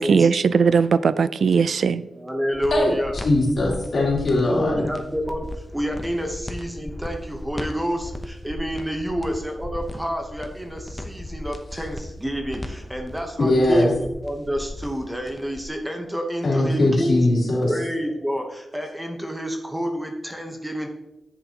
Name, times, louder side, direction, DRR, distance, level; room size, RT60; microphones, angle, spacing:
voice 1, 0.0-2.0, right 5 dB, 65° right, 15 dB, 0.3 m, -19 dB
voice 2, 2.1-3.2 4.4-20.9, equal, 10° right, 3 dB, 1.0 m, -29 dB
sound 1, 2.5-15.7, left 1 dB, 15° left, 0.8 m, -36 dB
voice 3, 3.2-4.9 13.4-13.9 16.4-17.7, left 2 dB, 55° left, -4 dB, 3.2 m, -20 dB
10.5 x 7.9 x 2.9 m, 0.92 s
wide cardioid pair, 130°, 0 cm